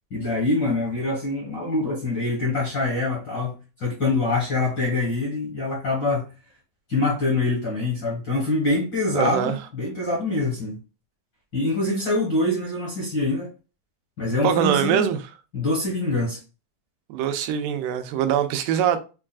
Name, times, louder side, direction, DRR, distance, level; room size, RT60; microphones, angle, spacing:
voice 1, 0.1-6.3 6.9-10.8 11.5-13.5 14.2-15.1 15.5-16.4, left 2 dB, 50° left, 1.5 m, -25 dB
voice 2, 9.1-9.6 14.4-15.2 17.1-19.0, right 9 dB, 85° right, 2.2 m, -23 dB
6.6 x 2.4 x 2.2 m
omnidirectional pair, 3.9 m